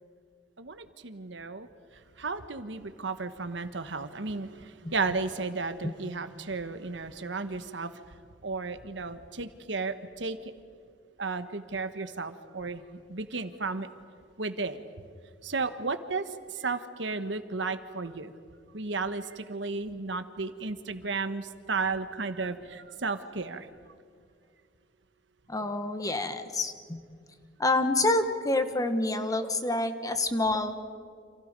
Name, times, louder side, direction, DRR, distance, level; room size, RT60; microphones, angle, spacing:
voice 1, 0.6-1.7 2.2-8.0 8.4-10.4 11.2-12.8 13.1-13.9 14.4-14.8 15.4-18.3 18.7-23.7, right 4 dB, 75° right, 10 dB, 1.3 m, -34 dB
voice 2, 25.5-27.0 27.6-30.7, left 2 dB, 20° left, 8 dB, 1.5 m, -27 dB
29.5 x 27.5 x 5.3 m, 2.1 s
head